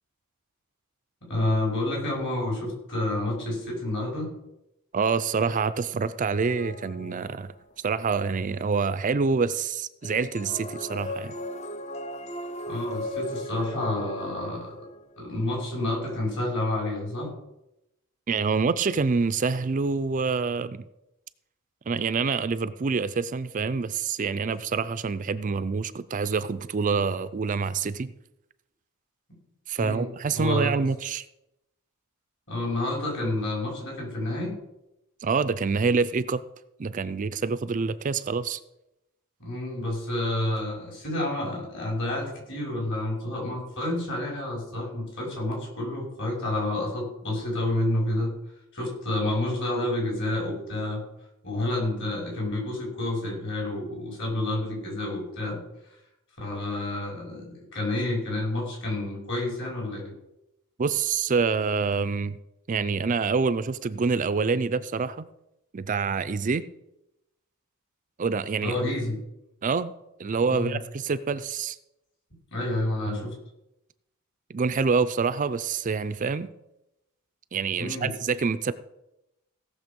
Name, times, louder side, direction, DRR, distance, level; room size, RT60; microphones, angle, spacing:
voice 1, 1.2-4.3 12.7-14.7 15.2-17.3 29.8-30.1 30.3-30.7 32.5-34.6 39.4-48.3 48.7-51.0 51.4-55.6 56.4-60.1 68.6-69.2 70.5-70.8 72.5-73.4 77.8-78.1, left 1 dB, 55° left, -2 dB, 5.5 m, -29 dB
voice 2, 4.9-7.5 7.8-11.3 18.3-20.8 21.9-28.1 29.7-31.3 35.2-36.4 36.8-38.6 60.8-62.4 62.7-65.3 65.7-66.6 68.2-68.8 69.6-69.9 70.2-71.8 73.1-73.3 74.5-76.5 77.5-78.7, right 5 dB, 35° right, 14 dB, 0.4 m, -26 dB
sound 1, 6.4-7.7 10.0-15.3, left 1 dB, 30° left, 0.5 m, -37 dB
16.5 x 6.8 x 5.3 m, 0.88 s
head